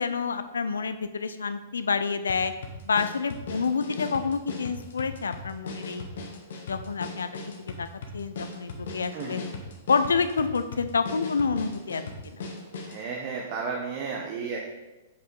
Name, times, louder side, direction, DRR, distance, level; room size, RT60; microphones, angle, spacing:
voice 1, 0.0-2.5 2.9-6.1 6.7-7.3 7.8-7.9 8.1-9.4 9.9-12.4, left 5 dB, 85° left, 10 dB, 0.5 m, -28 dB
sound 1, 2.3-13.0, left 3 dB, 70° left, 1.2 m, -38 dB
voice 2, 12.8-14.7, right 5 dB, 45° right, -1 dB, 1.0 m, -33 dB
6.8 x 5.4 x 3.9 m, 1.1 s
hypercardioid pair, 115°, 0 cm